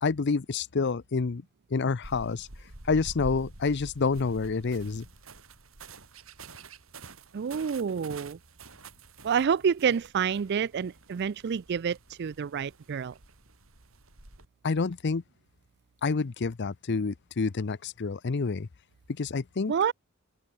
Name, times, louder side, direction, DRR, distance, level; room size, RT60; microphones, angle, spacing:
voice 1, 0.0-1.4 1.7-2.5 2.8-5.1 14.6-15.2 16.0-18.7 19.1-19.7, left 4 dB, 55° left, 0.6 m, -28 dB
sound 1, 2.0-14.5, right 2 dB, 70° right, 4.7 m, -48 dB
voice 2, 7.3-8.4 9.2-13.1 19.7-19.9, right 7 dB, 50° right, 0.4 m, -28 dB
head